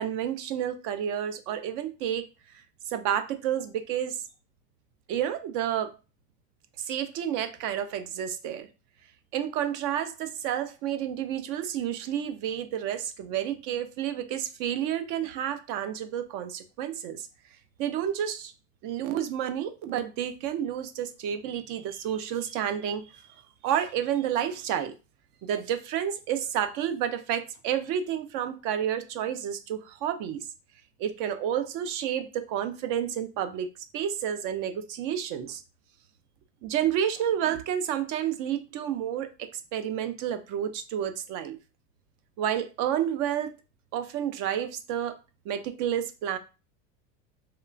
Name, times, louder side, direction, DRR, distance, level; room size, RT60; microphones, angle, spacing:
voice 1, 0.0-2.3 2.9-4.2 5.1-6.0 6.9-8.7 9.3-17.3 17.8-18.5 18.8-23.3 23.6-24.9 25.4-30.4 31.0-33.7 33.9-35.6 36.6-41.6 42.4-43.5 43.9-45.2 45.5-46.4, right 10 dB, 50° right, 10 dB, 0.5 m, -30 dB
2.9 x 2.1 x 2.4 m, 0.31 s
supercardioid pair, 105°, 40 cm